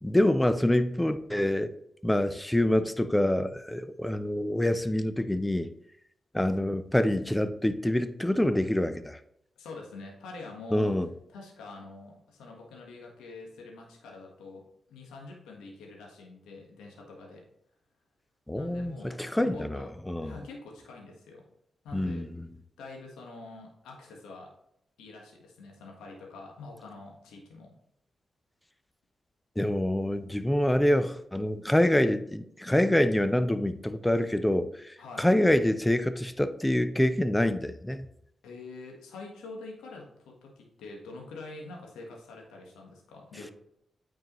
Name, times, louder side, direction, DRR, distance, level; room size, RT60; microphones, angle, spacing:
voice 1, 0.0-1.7 2.0-5.7 6.3-9.2 10.7-11.1 18.5-20.3 21.9-22.3 29.6-38.1, left 1 dB, 10° left, 11 dB, 0.6 m, -26 dB
voice 2, 9.6-10.9 11.3-14.6 14.9-17.4 18.5-19.9 20.2-21.4 21.8-22.3 22.8-24.5 25.0-27.7 35.0-35.4 38.4-43.5, left 3 dB, 85° left, 0 dB, 1.4 m, -45 dB
9.0 x 4.6 x 3.1 m, 0.73 s
supercardioid pair, 40°, 0 cm